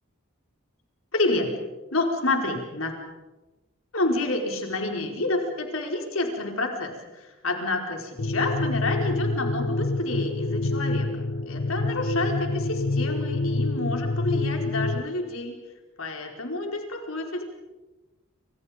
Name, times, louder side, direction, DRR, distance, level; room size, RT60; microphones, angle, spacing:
voice 1, 1.1-1.5 1.9-2.9 3.9-15.5 16.0-17.4, left 2 dB, 70° left, 3 dB, 4.7 m, -29 dB
sound 1, 8.2-15.0, left 2 dB, 90° left, 1.2 m, -27 dB
28.5 x 27.0 x 5.2 m, 1.1 s
head